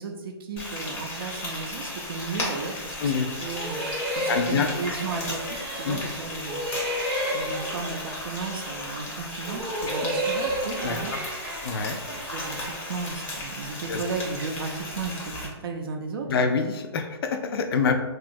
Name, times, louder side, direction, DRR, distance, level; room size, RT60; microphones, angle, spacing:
voice 1, 0.0-3.1 3.4-3.8 4.2-7.0 7.3-11.1 11.9-16.5, right 4 dB, 60° right, 3 dB, 0.4 m, -35 dB
Frying (food), 0.6-15.5, left 1 dB, 15° left, 0.6 m, -35 dB
sound 1, 3.5-6.1 6.5-9.0 9.4-13.2, equal, 20° right, 0.7 m, -32 dB
voice 2, 4.3-4.7 5.9-6.0 10.8-11.2 11.6-12.0 13.9-14.0 16.3-17.9, left 5 dB, 60° left, 6 dB, 0.4 m, -26 dB
2.8 x 2.3 x 2.5 m, 1.2 s
hypercardioid pair, 145°, 14 cm